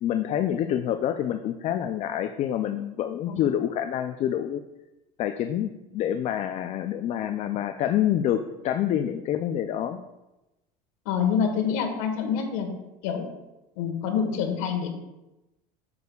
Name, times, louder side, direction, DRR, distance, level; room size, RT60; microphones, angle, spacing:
voice 1, 0.0-4.6 5.2-10.0, left 10 dB, 40° left, 8 dB, 0.4 m, -27 dB
voice 2, 11.0-12.7 13.0-13.3 13.8-14.9, left 7 dB, 85° left, 5 dB, 1.4 m, -26 dB
9.4 x 6.7 x 2.3 m, 0.99 s
cardioid pair, 135°, 17 cm